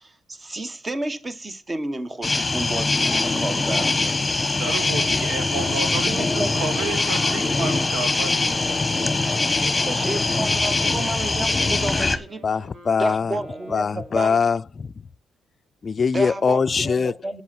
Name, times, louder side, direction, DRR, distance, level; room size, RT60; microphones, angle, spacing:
voice 1, 0.0-4.3 5.5-6.5 9.8-12.6 13.0-14.4 16.1-17.4, right 1 dB, 25° right, 1.0 m, -31 dB
sound 1, 2.2-12.2, left 3 dB, 15° left, 1.1 m, -22 dB
voice 2, 4.6-8.4, right 4 dB, 85° right, 2.0 m, -31 dB
Wind instrument woodwind instrument, 6.4-14.3, right 2 dB, 65° right, 5.0 m, -45 dB
voice 3, 12.4-13.3 13.7-14.9 15.8-17.1, left 5 dB, 40° left, 0.4 m, -22 dB
8.3 x 7.2 x 5.8 m
cardioid pair, 90°, 0 cm